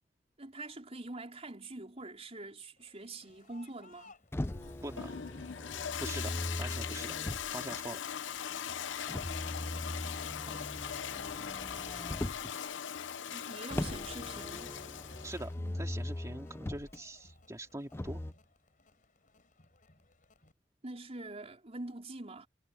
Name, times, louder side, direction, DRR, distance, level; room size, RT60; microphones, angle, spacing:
voice 1, 0.4-4.1 7.0-7.1 10.4-10.8 13.2-14.7 15.6-15.7 20.8-22.5, right 2 dB, 35° right, 4.5 m, -45 dB
Crowd, 2.8-20.5, left 2 dB, 50° left, 4.7 m, -63 dB
Motor vehicle (road), 4.3-7.8 9.1-12.6 13.7-17.0 17.9-18.3, left 1 dB, 15° left, 0.6 m, -40 dB
Toilet flush, 4.4-15.5, left 8 dB, 90° left, 0.7 m, -40 dB
voice 2, 6.0-7.2 7.5-8.0 15.2-18.2, right 1 dB, 20° right, 2.4 m, -43 dB
head